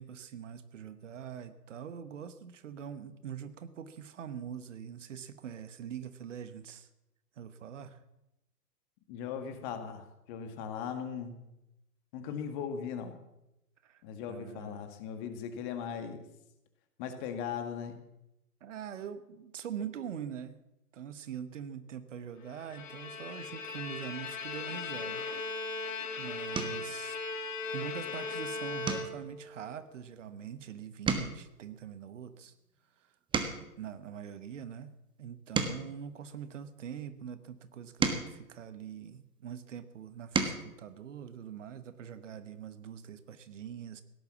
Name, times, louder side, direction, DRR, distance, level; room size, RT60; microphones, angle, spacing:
voice 1, 0.0-6.9 7.4-8.0 13.8-14.9 18.6-20.6 20.9-25.2 26.2-27.2 27.7-32.5 33.0-33.1 33.8-44.0, right 8 dB, 50° right, 13 dB, 1.3 m, -43 dB
voice 2, 9.1-11.5 12.1-13.2 14.0-16.2 17.0-18.0, left 7 dB, 30° left, 8 dB, 2.1 m, -38 dB
Bowed string instrument, 22.5-29.5, left 3 dB, 55° left, 2.4 m, -38 dB
sound 1, 25.7-25.9 26.5-26.9 27.4-27.8 28.1-28.3 28.8-30.6 30.9-33.8 34.5-36.9 37.6-39.4 40.0-40.7 42.1-42.2 42.5-42.7, right 5 dB, 10° right, 1.2 m, -36 dB
17.0 x 10.5 x 7.2 m, 0.90 s
figure-of-eight pair, 115°, 46 cm